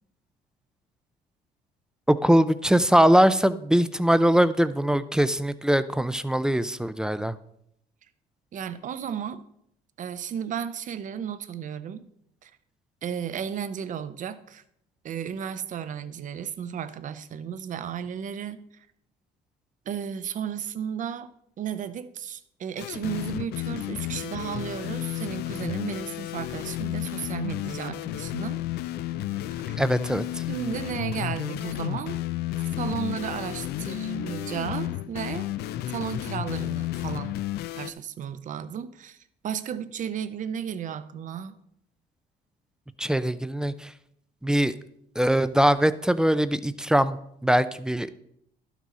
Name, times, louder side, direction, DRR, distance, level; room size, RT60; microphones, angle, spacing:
voice 1, 2.1-7.3 29.8-30.2 43.0-43.9 44.4-44.7 45.2-47.2 47.4-48.1, equal, 5° right, 13 dB, 0.4 m, -22 dB
voice 2, 8.5-9.4 10.0-12.1 12.4-12.5 13.0-14.6 15.0-18.9 19.9-21.3 21.6-28.6 29.7-29.8 30.5-32.2 32.8-35.5 35.9-37.4 37.7-41.6, right 8 dB, 50° right, 13 dB, 0.7 m, -34 dB
sound 1, 22.8-37.9, left 14 dB, 75° left, 0.4 m, -32 dB
11.5 x 6.1 x 4.2 m, 0.72 s
cardioid pair, 110°, 17 cm